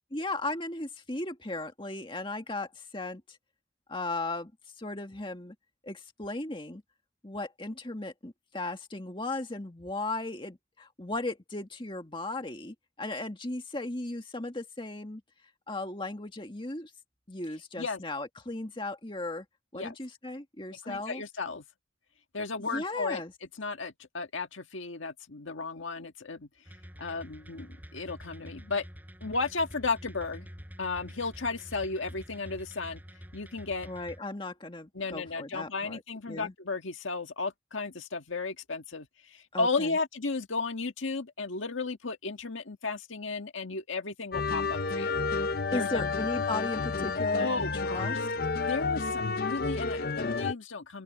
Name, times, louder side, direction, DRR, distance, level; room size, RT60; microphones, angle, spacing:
voice 1, 0.1-3.4 3.9-4.5 4.8-5.6 5.8-6.8 7.2-15.2 15.7-16.9 17.3-19.5 19.7-21.2 22.6-23.3 33.9-36.0 36.3-36.5 39.5-40.0 45.7-48.3, left 2 dB, 25° left, 2.0 m, -36 dB
voice 2, 20.8-21.6 22.3-23.2 23.6-26.5 27.0-28.9 29.2-30.5 30.8-33.0 33.3-33.9 34.9-45.1 45.7-46.2 47.3-48.2 48.6-51.0, left 3 dB, 85° left, 1.7 m, -34 dB
sound 1, 26.7-34.2, equal, 10° right, 7.1 m, -47 dB
sound 2, 44.3-50.5, left 4 dB, 50° left, 0.7 m, -30 dB
open air
head